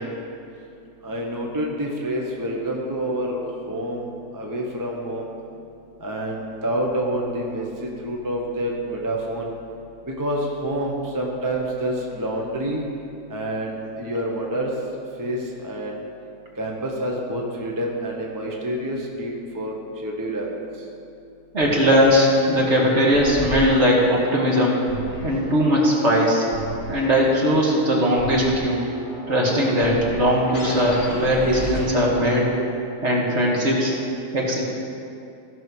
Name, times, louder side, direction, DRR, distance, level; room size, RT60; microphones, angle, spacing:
voice 1, 1.0-5.3 6.0-9.5 10.1-12.8 13.3-14.7 15.2-16.0 16.6-19.7 20.0-20.5, right 1 dB, 15° right, -1 dB, 1.0 m, -27 dB
voice 2, 21.5-24.8 25.2-26.4 26.9-28.8 29.3-32.5 33.0-33.9 34.3-34.6, equal, 50° right, -3 dB, 2.1 m, -19 dB
sound 1, 23.1-32.6, left 1 dB, 85° left, 2.2 m, -35 dB
16.0 x 5.5 x 6.2 m, 2.7 s
omnidirectional pair, 1.6 m